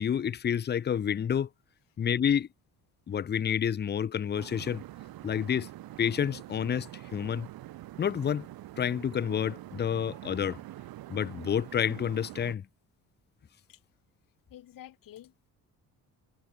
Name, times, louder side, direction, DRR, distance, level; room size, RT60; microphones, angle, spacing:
voice 1, 0.0-1.5 2.0-2.5 3.1-4.8 5.2-5.7 6.0-7.5 8.0-8.5 8.8-10.6 11.1-12.6, left 8 dB, 30° left, 0.5 m, -29 dB
sound 1, 4.4-12.5, right 15 dB, 75° right, 1.2 m, -45 dB
voice 2, 14.5-15.5, left 12 dB, 65° left, 1.3 m, -50 dB
cardioid pair, 100°, 36 cm